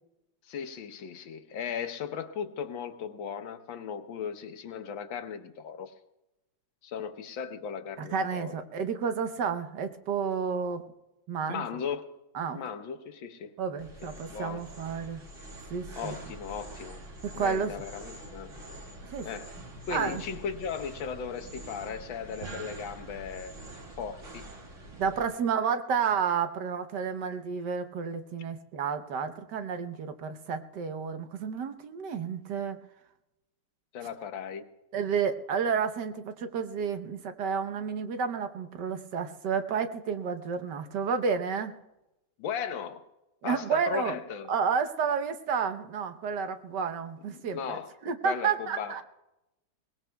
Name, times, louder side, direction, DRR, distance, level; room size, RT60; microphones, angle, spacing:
voice 1, 0.5-5.9 6.8-8.6 11.5-12.2 12.5-13.6 14.0-14.7 16.0-17.0 17.3-18.6 19.2-19.5 19.9-23.6 24.0-24.4 33.9-34.7 42.4-43.1 43.4-44.5 47.3-47.9 48.2-49.0, left 7 dB, 90° left, 8 dB, 1.7 m, -37 dB
voice 2, 8.1-10.8 11.3-11.6 12.3-12.6 13.6-15.2 15.7-16.1 17.2-17.7 19.1-19.3 19.9-20.2 25.0-32.8 34.9-41.7 43.4-44.2 44.5-49.0, right 6 dB, 70° right, 8 dB, 1.4 m, -31 dB
sound 1, 13.8-25.2, right 1 dB, 40° right, 2.3 m, -45 dB
22.5 x 19.0 x 2.3 m, 0.93 s
omnidirectional pair, 2.1 m